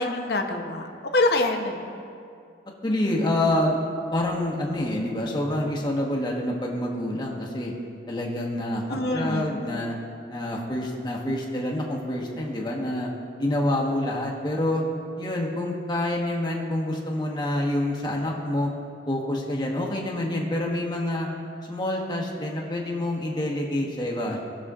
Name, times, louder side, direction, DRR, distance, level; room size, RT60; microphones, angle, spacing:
voice 1, 0.0-2.0 8.9-9.6, left 2 dB, 60° left, 3 dB, 0.8 m, -26 dB
voice 2, 2.8-3.8 4.1-7.7 8.1-10.0 10.3-13.1 13.4-14.8 15.2-18.7 19.1-21.3 21.7-24.4, left 1 dB, 25° left, -2 dB, 1.2 m, -27 dB
19.5 x 6.7 x 2.5 m, 2.4 s
head